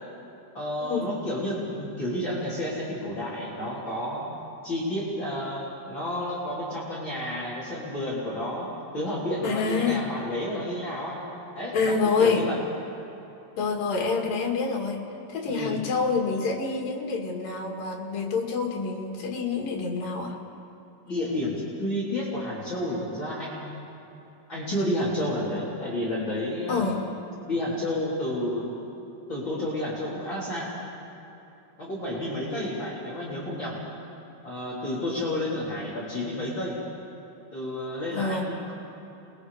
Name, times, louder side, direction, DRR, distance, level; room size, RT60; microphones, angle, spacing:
voice 1, 0.5-4.2 4.6-8.7 8.9-11.2 11.6-12.6 15.5-15.8 21.1-23.8 24.5-26.9 27.5-28.6 29.3-30.7 31.8-33.8 34.4-36.8 37.5-38.7, left 1 dB, 35° left, -7 dB, 3.9 m, -30 dB
voice 2, 9.4-10.1 11.7-12.4 13.6-20.4 26.7-27.0 38.1-38.5, left 4 dB, 80° left, 1 dB, 3.8 m, -27 dB
28.5 x 21.5 x 5.0 m, 2.9 s
omnidirectional pair, 3.9 m